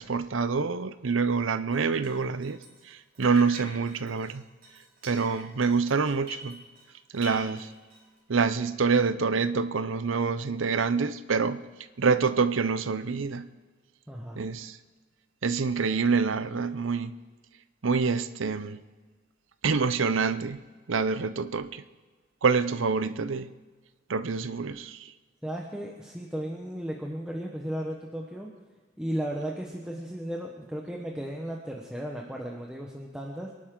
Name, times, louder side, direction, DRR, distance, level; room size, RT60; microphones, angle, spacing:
voice 1, 0.0-2.6 2.9-4.4 5.0-6.6 7.1-7.7 8.3-11.6 12.0-13.5 14.4-14.8 15.4-17.2 17.8-18.8 19.6-20.6 20.9-21.8 22.4-23.5 24.1-25.1, right 5 dB, 80° right, 0.7 m, -26 dB
Drip, 1.7-2.9 3.1-6.9 7.1-8.2, right 1 dB, 45° right, 5.8 m, -45 dB
voice 2, 14.1-14.4 25.4-28.5 29.0-33.5, right 1 dB, 5° right, 1.2 m, -35 dB
25.5 x 11.5 x 3.9 m
head